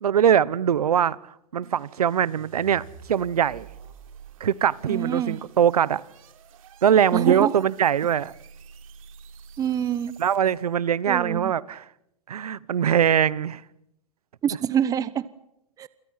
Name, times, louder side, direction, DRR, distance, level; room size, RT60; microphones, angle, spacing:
voice 1, 0.0-1.2 1.5-3.7 4.4-6.0 6.8-8.3 10.2-11.8 12.3-13.6, right 9 dB, 85° right, 1.1 m, -22 dB
sound 1, 1.6-10.7, right 6 dB, 65° right, 3.8 m, -48 dB
voice 2, 4.9-5.4 7.1-7.6 9.6-10.2 11.1-11.5 14.4-15.3 15.8-15.9, right 9 dB, 20° right, 1.1 m, -25 dB
28.5 x 26.5 x 5.9 m
hypercardioid pair, 135°, 19 cm